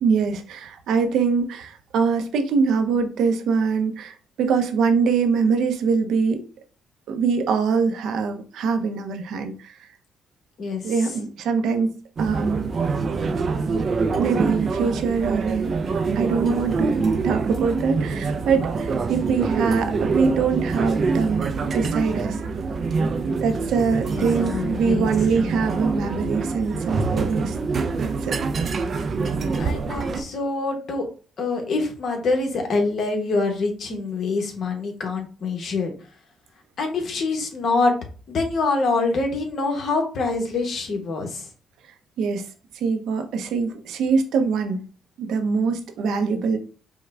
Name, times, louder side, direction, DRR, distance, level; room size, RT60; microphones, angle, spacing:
voice 1, 0.0-6.4 7.1-9.9 10.8-11.9 12.2-12.7 14.2-15.7 16.2-22.4 23.4-27.6 28.0-28.4 42.2-42.4 42.7-44.8 45.2-46.6, right 5 dB, 80° right, 6 dB, 0.8 m, -23 dB
sound 1, 12.2-30.2, right 4 dB, 50° right, 0.5 m, -25 dB
voice 2, 24.1-25.1 29.6-31.1 31.4-35.9 36.8-37.9 38.3-41.4, left 3 dB, 60° left, 2 dB, 1.3 m, -25 dB
5.4 x 2.3 x 3.5 m, 0.38 s
cardioid pair, 90°, 0 cm